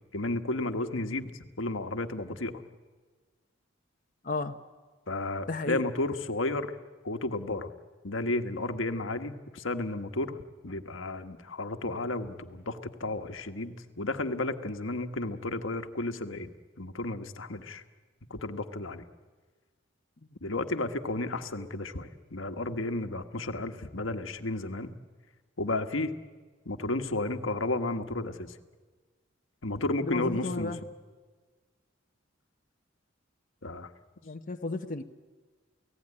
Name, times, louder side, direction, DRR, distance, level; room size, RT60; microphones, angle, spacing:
voice 1, 0.1-1.3 1.6-2.5 5.1-6.7 7.0-7.7 8.0-16.5 16.8-17.8 18.3-19.1 20.4-24.9 25.6-26.1 26.6-28.5 29.6-30.7 33.6-33.9, left 2 dB, 80° left, 8 dB, 1.4 m, -32 dB
voice 2, 4.2-4.6 5.5-5.8 30.0-30.8 34.2-35.0, left 3 dB, 40° left, 4 dB, 0.9 m, -33 dB
29.5 x 17.0 x 9.8 m, 1.4 s
head